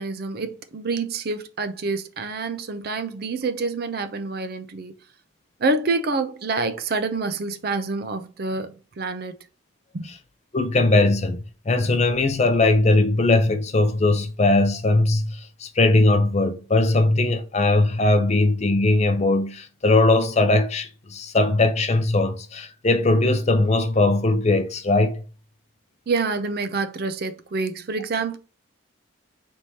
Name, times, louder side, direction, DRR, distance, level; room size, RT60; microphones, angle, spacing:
voice 1, 0.0-4.9 5.6-9.4 9.9-10.1 26.1-28.4, right 3 dB, 45° right, 0.4 m, -27 dB
voice 2, 10.5-25.2, left 2 dB, 30° left, 0.5 m, -20 dB
4.5 x 3.5 x 2.7 m
head